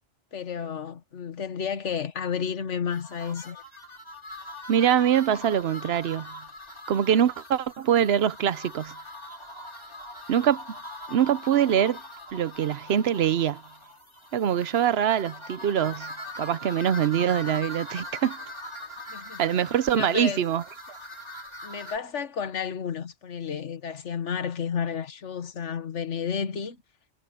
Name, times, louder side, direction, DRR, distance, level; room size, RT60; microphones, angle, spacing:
voice 1, 0.3-3.6 19.1-19.4 19.9-20.4 21.6-26.8, left 7 dB, 90° left, 1.6 m, -31 dB
sound 1, 2.9-22.0, left 1 dB, 25° left, 3.5 m, -42 dB
voice 2, 4.7-6.4 6.9-8.9 10.3-10.6 11.1-12.0 12.3-13.6 14.3-18.4 19.4-21.0, right 9 dB, 65° right, 0.9 m, -24 dB
omnidirectional pair, 1.2 m